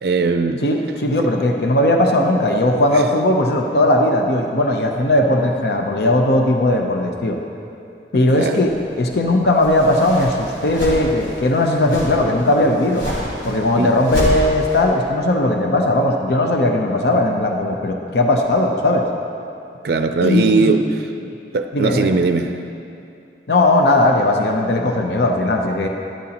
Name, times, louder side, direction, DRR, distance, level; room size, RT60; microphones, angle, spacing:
voice 1, 0.0-0.6 1.2-1.3 2.9-3.0 8.4-8.6 13.8-13.9 19.8-21.1 21.5-22.6, right 3 dB, 60° right, 8 dB, 0.4 m, -19 dB
voice 2, 0.6-7.4 8.1-13.1 13.4-19.1 20.2-20.8 21.7-22.1 23.5-25.9, left 1 dB, 70° left, 2 dB, 0.7 m, -18 dB
sound 1, 8.6-14.9, equal, 50° left, 2.8 m, -29 dB
12.5 x 11.5 x 2.9 m, 2.6 s
head